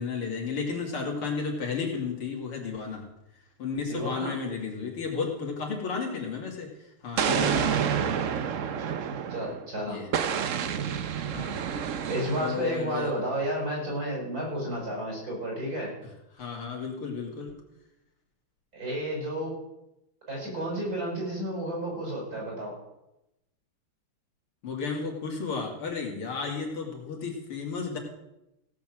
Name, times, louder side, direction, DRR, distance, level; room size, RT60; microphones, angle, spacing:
voice 1, 0.0-3.1 3.6-6.7 7.0-8.2 9.9-10.1 11.3-11.6 12.4-13.1 16.3-17.6 24.6-28.0, left 5 dB, 80° left, 0 dB, 3.6 m, -33 dB
voice 2, 3.8-4.4 9.1-10.0 12.1-15.9 18.7-19.5 20.3-22.7, right 1 dB, 40° right, -3 dB, 7.1 m, -31 dB
Explosion, 7.2-9.6 10.1-12.7, right 8 dB, 65° right, 0.7 m, -29 dB
16.5 x 7.2 x 7.7 m, 0.90 s
omnidirectional pair, 2.4 m